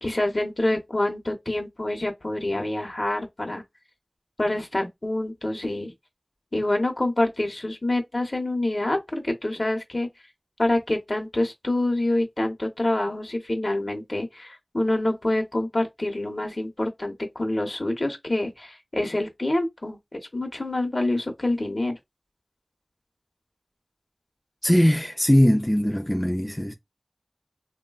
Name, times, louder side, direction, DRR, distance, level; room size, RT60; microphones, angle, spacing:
voice 1, 0.0-3.6 4.4-5.9 6.5-10.1 10.6-20.0 20.3-22.0, left 1 dB, 65° left, 0.8 m, -26 dB
voice 2, 24.6-26.7, equal, 15° left, 0.3 m, -20 dB
3.1 x 2.1 x 2.3 m
wide cardioid pair, 40°, 0 cm